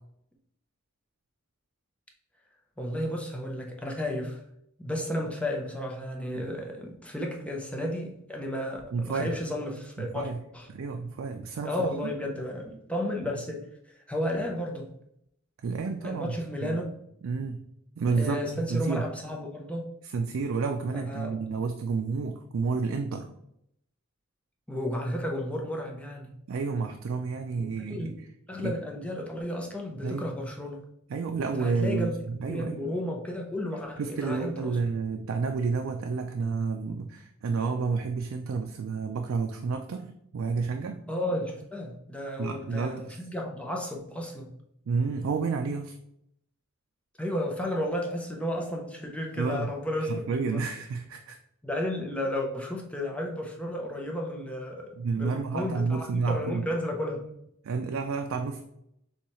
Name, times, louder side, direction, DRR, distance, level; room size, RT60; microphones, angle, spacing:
voice 1, 2.8-4.4 4.8-10.7 11.6-14.9 16.0-16.9 18.1-19.9 20.9-21.4 24.7-26.3 27.9-28.2 28.5-30.8 31.6-32.2 32.5-34.8 41.1-44.5 47.2-50.1 50.4-50.6 51.6-57.3, left 1 dB, 5° left, 0 dB, 0.6 m, -33 dB
voice 2, 8.9-9.3 10.0-10.4 10.7-12.1 15.6-16.4 16.6-16.8 17.2-17.6 18.0-19.0 20.1-23.3 26.5-28.1 28.6-28.7 30.0-30.3 31.1-32.8 34.0-41.0 42.4-43.2 44.9-46.0 49.4-49.7 50.1-51.4 55.0-56.6 57.6-58.6, right 4 dB, 80° right, 5 dB, 0.4 m, -30 dB
7.0 x 2.3 x 3.0 m, 0.76 s
head